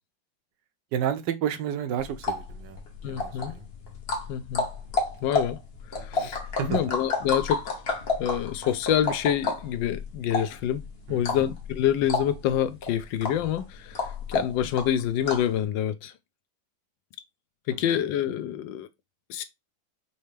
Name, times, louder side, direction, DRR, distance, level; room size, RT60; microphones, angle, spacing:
voice 1, 0.9-3.7 6.0-6.3 6.6-7.0 11.1-11.4 17.7-17.8, right 9 dB, 75° right, 1.2 m, -31 dB
sound 1, 2.0-15.6, left 3 dB, 40° left, 1.0 m, -31 dB
voice 2, 3.0-3.5 4.3-4.7 5.2-5.6 5.9-7.6 8.2-10.8 11.1-16.1 17.7-18.9 19.3-19.4, left 10 dB, 75° left, 1.2 m, -27 dB
5.4 x 2.9 x 3.3 m
omnidirectional pair, 2.1 m